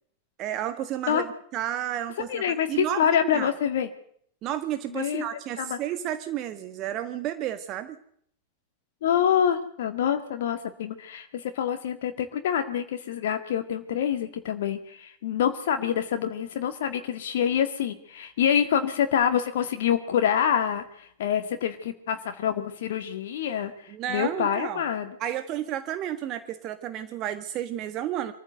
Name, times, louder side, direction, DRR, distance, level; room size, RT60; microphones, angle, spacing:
voice 1, 0.4-2.4 2.7-3.5 4.4-8.0 23.9-24.8 25.2-28.3, right 11 dB, 35° right, 10 dB, 1.6 m, -32 dB
voice 2, 2.2-3.9 4.9-5.3 5.6-5.8 9.0-25.2, left 9 dB, 55° left, 6 dB, 1.8 m, -26 dB
24.5 x 14.5 x 8.0 m, 0.63 s
figure-of-eight pair, 90°, 0 cm